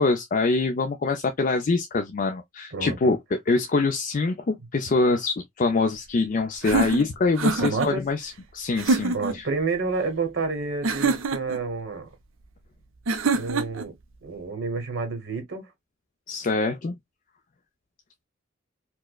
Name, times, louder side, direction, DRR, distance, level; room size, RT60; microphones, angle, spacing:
voice 1, 0.0-3.2 3.5-9.5 16.3-17.0, left 3 dB, 40° left, 0.4 m, -24 dB
voice 2, 2.7-3.1 7.6-8.1 9.1-12.1 13.3-13.9 14.2-15.7, right 4 dB, 65° right, 1.0 m, -29 dB
sound 1, 6.6-7.9 8.8-9.4 10.8-11.6 13.1-13.9, right 3 dB, 80° right, 0.6 m, -25 dB
4.5 x 2.1 x 2.2 m
head